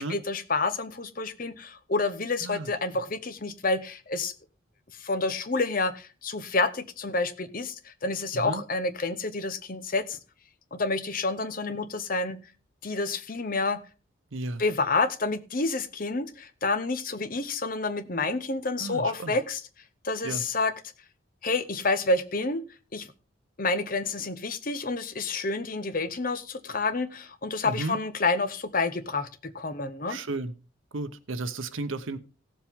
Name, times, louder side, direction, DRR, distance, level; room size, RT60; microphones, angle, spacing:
voice 1, 0.0-4.3 4.9-10.2 10.7-12.4 12.8-13.8 14.6-19.6 20.0-20.7 21.4-22.6 22.9-23.1 23.6-30.2, left 3 dB, 45° left, 0.8 m, -29 dB
voice 2, 14.3-14.6 18.8-19.4 20.2-20.4 27.6-28.0 30.1-30.5 30.9-32.2, right 2 dB, 80° right, 0.8 m, -33 dB
16.5 x 7.5 x 3.6 m
head